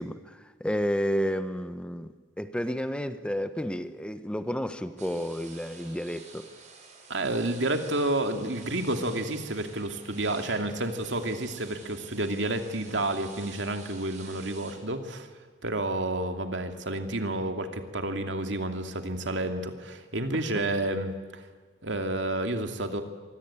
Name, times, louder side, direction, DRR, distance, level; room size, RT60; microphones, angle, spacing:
voice 1, 0.0-6.5 20.3-20.4, equal, 5° left, 10 dB, 0.9 m, -31 dB
sound 1, 5.0-14.7, right 5 dB, 40° right, 5.3 m, -49 dB
voice 2, 7.1-15.3 15.6-21.4 21.8-23.0, right 1 dB, 80° right, 6 dB, 2.5 m, -30 dB
25.5 x 23.5 x 8.9 m, 1.4 s
head